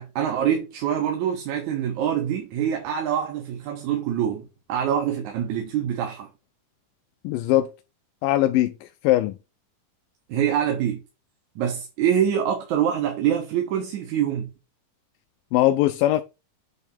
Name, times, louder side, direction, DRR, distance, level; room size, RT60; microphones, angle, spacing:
voice 1, 0.0-6.3 10.3-11.0 11.6-14.5, right 9 dB, 70° right, 2.3 m, -25 dB
voice 2, 7.2-7.7 8.2-9.4 15.5-16.2, left 15 dB, 90° left, 2.2 m, -21 dB
8.4 x 3.5 x 5.9 m
omnidirectional pair, 3.8 m